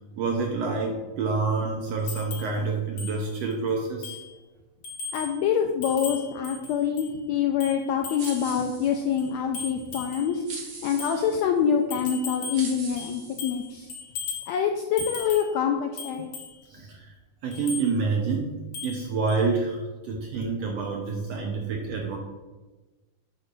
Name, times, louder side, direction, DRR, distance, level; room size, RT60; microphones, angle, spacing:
voice 1, 0.2-4.2 16.7-17.1 17.4-22.2, right 4 dB, 70° right, 1 dB, 1.6 m, -28 dB
sound 1, 2.1-2.5 3.0-3.1 3.5-3.6 4.0-4.3 4.8-5.3 5.8-7.1 7.6-8.5 9.2-10.3 11.0-11.2 11.9-12.7 13.0-13.6 13.9-14.5 15.0-15.5 16.0-16.5 17.5-17.9 18.7-19.0 19.3-19.4, left 5 dB, 60° left, 2.7 m, -37 dB
voice 2, 5.1-13.9 14.5-16.4, left 7 dB, 85° left, 4 dB, 1.6 m, -26 dB
sound 2, 8.2-9.3 10.5-11.4 12.0-12.2 12.5-13.9, right 3 dB, 45° right, 1.7 m, -41 dB
8.5 x 4.9 x 5.3 m, 1.2 s
omnidirectional pair, 3.7 m